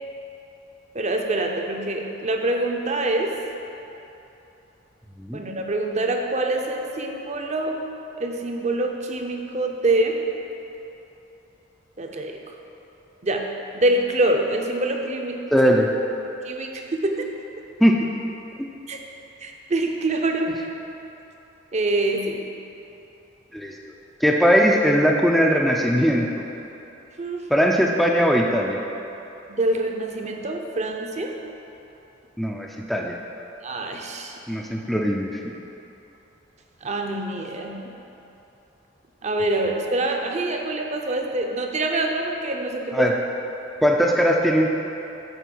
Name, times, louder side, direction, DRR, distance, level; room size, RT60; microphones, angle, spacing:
voice 1, 0.9-3.3 5.3-7.8 8.2-10.2 12.0-12.5 13.2-13.5 13.7-15.4 16.4-17.3 18.9-19.0 19.4-20.7 21.7-22.4 27.2-27.4 29.5-31.3 33.6-34.4 36.8-37.8 39.2-43.1, right 2 dB, 35° right, 2 dB, 0.7 m, -25 dB
voice 2, 15.5-15.9 17.8-17.9 23.5-23.7 24.2-26.4 27.5-28.8 32.4-33.2 34.5-35.6 42.9-43.1 43.8-44.7, equal, ahead, -1 dB, 0.4 m, -19 dB
8.1 x 4.6 x 6.1 m, 3.0 s
head